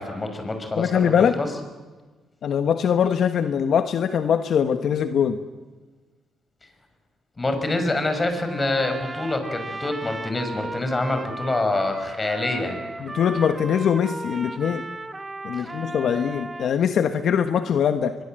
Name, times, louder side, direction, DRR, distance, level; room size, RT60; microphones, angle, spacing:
voice 1, 0.0-1.5 6.6-6.7 7.4-12.8 15.6-15.8, left 2 dB, 25° left, 7 dB, 5.7 m, -26 dB
voice 2, 0.8-1.4 2.4-5.4 13.0-14.9 15.4-18.2, left 8 dB, 65° left, 8 dB, 1.2 m, -22 dB
Trumpet, 8.4-16.8, right 2 dB, 20° right, 1.5 m, -35 dB
24.0 x 22.5 x 7.7 m, 1.3 s
cardioid pair, 90°, 0 cm